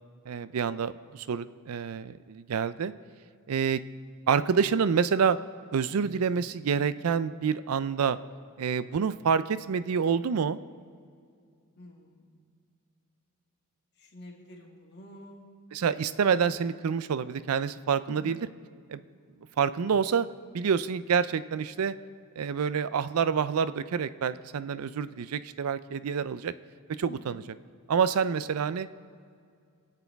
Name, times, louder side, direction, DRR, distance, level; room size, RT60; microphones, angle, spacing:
voice 1, 0.3-2.9 3.5-3.8 4.3-5.4 5.7-8.2 8.6-10.6 15.7-18.4 18.9-19.0 19.6-20.3 20.5-21.9 22.4-26.5 27.0-27.4 27.9-28.9, right 6 dB, 80° right, 15 dB, 0.4 m, -27 dB
voice 2, 11.8-12.2 14.0-15.4 18.1-18.4 27.1-27.4, left 1 dB, 50° left, -1 dB, 2.1 m, -48 dB
24.0 x 8.2 x 3.5 m, 2.3 s
head